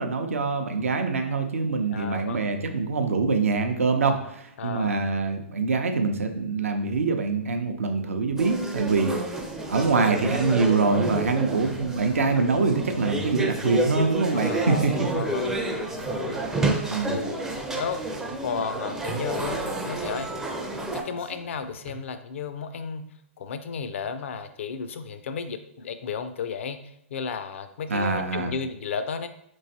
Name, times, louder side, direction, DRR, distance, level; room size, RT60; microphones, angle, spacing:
voice 1, 0.0-9.4 9.7-14.9 16.9-17.2 27.9-28.5, right 4 dB, 80° right, 5 dB, 0.6 m, -24 dB
voice 2, 1.9-2.4 4.6-5.0 8.7-8.9 14.2-15.5 16.1-16.4 17.0-17.4 17.7-19.6 19.9-20.3 20.8-23.1 23.4-29.3, left 6 dB, 65° left, 10 dB, 0.4 m, -33 dB
sound 1, 8.4-21.0, right 2 dB, 5° right, 0.4 m, -30 dB
sound 2, 13.4-22.0, right 5 dB, 40° right, 0.8 m, -46 dB
4.4 x 3.1 x 2.7 m, 0.74 s
hypercardioid pair, 120°, 7 cm